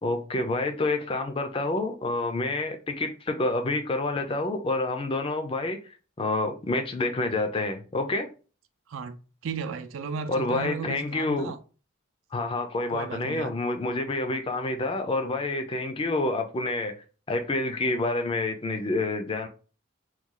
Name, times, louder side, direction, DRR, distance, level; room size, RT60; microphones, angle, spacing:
voice 1, 0.0-5.8 6.2-8.3 10.3-11.5 12.3-17.0 17.3-19.5, left 2 dB, 25° left, 0.4 m, -28 dB
voice 2, 8.9-11.6 12.9-13.5, right 6 dB, 75° right, 0.4 m, -35 dB
3.0 x 2.3 x 3.7 m
head